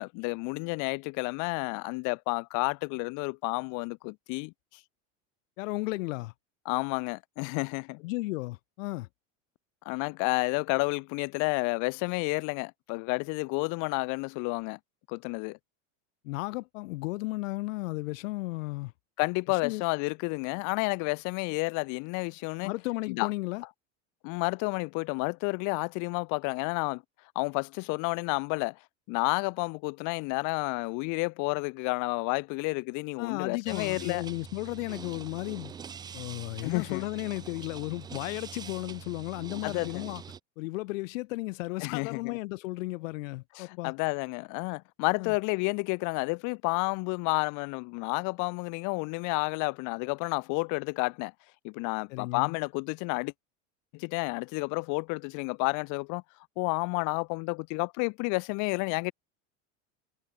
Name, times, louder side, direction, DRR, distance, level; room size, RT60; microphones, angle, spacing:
voice 1, 0.0-4.5 6.7-8.0 9.8-14.8 15.1-15.6 19.2-22.7 23.1-23.3 24.2-27.0 27.3-28.8 29.1-34.2 36.6-37.0 39.6-40.0 41.8-42.4 43.6-51.3 51.6-53.3 53.9-56.2 56.6-59.1, left 31 dB, 50° left, 0.9 m, -30 dB
voice 2, 5.6-6.3 8.0-9.1 16.2-18.9 19.5-19.8 22.6-23.6 33.2-35.8 36.1-40.2 40.6-43.9 45.2-45.3 52.1-52.6, left 22 dB, 85° left, 0.7 m, -34 dB
sound 1, 33.7-40.4, right 7 dB, 10° right, 0.3 m, -44 dB
supercardioid pair, 145°, 39 cm